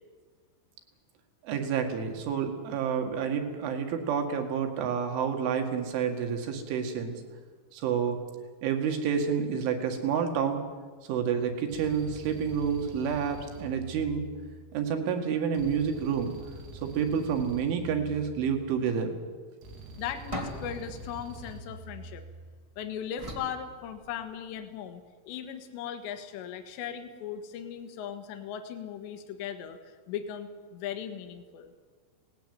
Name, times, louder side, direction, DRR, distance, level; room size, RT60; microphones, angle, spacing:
voice 1, 1.4-7.2 7.7-8.2 8.6-10.6 11.1-14.2 14.7-16.3 16.8-19.1, right 7 dB, 70° right, 5 dB, 4.3 m, -29 dB
sound 1, 11.7-14.8 15.5-18.8 19.6-22.5, right 2 dB, 85° right, 5.5 m, -45 dB
voice 2, 20.0-22.2 22.8-31.7, left 8 dB, 70° left, 7 dB, 3.4 m, -38 dB
sound 2, 20.3-22.5 23.2-24.6, equal, 25° right, 0.6 m, -42 dB
18.5 x 17.5 x 9.4 m, 1.5 s
omnidirectional pair, 6.0 m